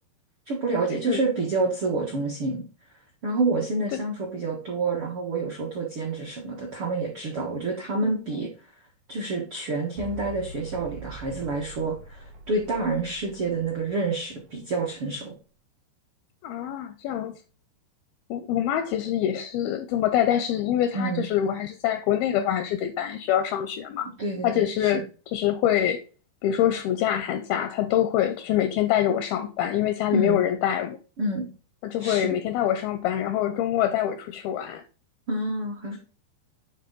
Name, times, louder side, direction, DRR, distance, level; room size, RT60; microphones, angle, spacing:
voice 1, 0.5-2.6 3.2-8.5 9.1-15.4 20.9-21.3 24.2-25.0 30.1-30.4 31.2-31.5 32.0-32.4 35.3-36.0, right 3 dB, 70° right, 1.3 m, -28 dB
sound 1, 10.0-14.5, right 2 dB, 85° right, 4.2 m, -43 dB
voice 2, 16.4-17.3 18.3-24.1 24.4-25.1 25.3-26.0 26.4-31.0 31.8-34.8, left 11 dB, 85° left, 2.2 m, -25 dB
9.4 x 3.5 x 3.8 m
omnidirectional pair, 4.8 m